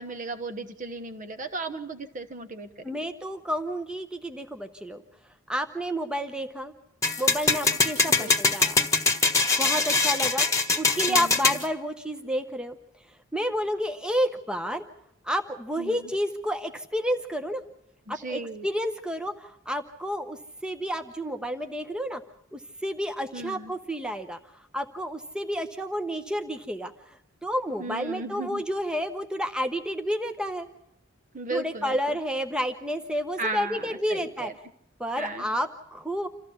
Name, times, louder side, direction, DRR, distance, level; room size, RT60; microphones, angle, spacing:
voice 1, 0.0-3.1 8.1-8.3 11.1-11.6 15.8-16.1 18.1-18.7 23.3-23.7 27.8-28.6 31.3-32.2 33.4-34.5 35.2-35.5, right 2 dB, 45° right, 9 dB, 1.2 m, -36 dB
voice 2, 2.8-5.0 5.5-6.7 7.2-8.8 9.6-10.5 10.7-12.8 13.3-14.8 15.2-17.6 18.1-22.2 22.5-24.4 24.7-26.9 27.4-30.7 31.5-34.5 35.0-36.3, equal, 5° right, 7 dB, 0.9 m, -30 dB
sound 1, 7.0-11.6, left 4 dB, 15° left, 1.4 m, -23 dB
27.5 x 14.5 x 7.1 m, 0.78 s
head